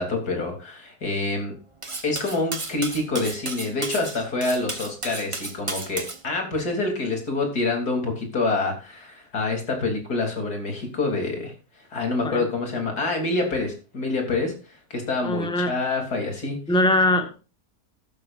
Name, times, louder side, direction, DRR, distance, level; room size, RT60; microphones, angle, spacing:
voice 1, 0.0-1.6 2.0-11.5 11.9-16.6, left 3 dB, 80° left, 3 dB, 4.0 m, -27 dB
Cutlery silverware, 1.8-6.2, right 3 dB, 20° right, 1.2 m, -33 dB
voice 2, 15.2-15.7 16.7-17.3, left 1 dB, 5° left, 6 dB, 1.5 m, -21 dB
14.0 x 12.0 x 2.6 m, 0.33 s
omnidirectional pair, 1.6 m